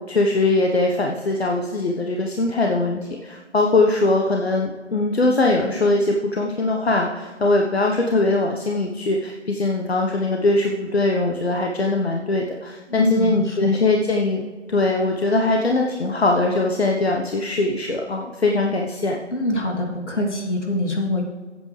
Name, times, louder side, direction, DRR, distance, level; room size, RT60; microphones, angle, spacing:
voice 1, 0.0-14.4 14.7-19.2, left 2 dB, 60° left, 1 dB, 1.1 m, -21 dB
voice 2, 12.9-13.6 19.3-21.2, left 1 dB, 75° left, 0 dB, 3.0 m, -24 dB
15.5 x 8.3 x 3.3 m, 1.4 s
figure-of-eight pair, 165°, 35 cm